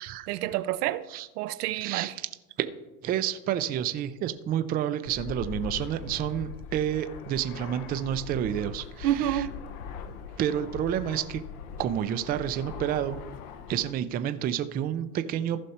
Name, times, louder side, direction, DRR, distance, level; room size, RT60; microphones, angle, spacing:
voice 1, 0.3-1.0 1.4-2.1 9.0-9.6, right 13 dB, 85° right, 0.7 m, -28 dB
voice 2, 1.7-2.3 2.6-2.7 3.0-9.5 10.4-11.4 11.8-13.2 13.7-15.6, right 10 dB, 20° right, 0.4 m, -29 dB
Fixed-wing aircraft airplane, 5.1-13.9, left 7 dB, 65° left, 1.0 m, -41 dB
14.5 x 5.4 x 4.2 m
supercardioid pair, 125°, 45 cm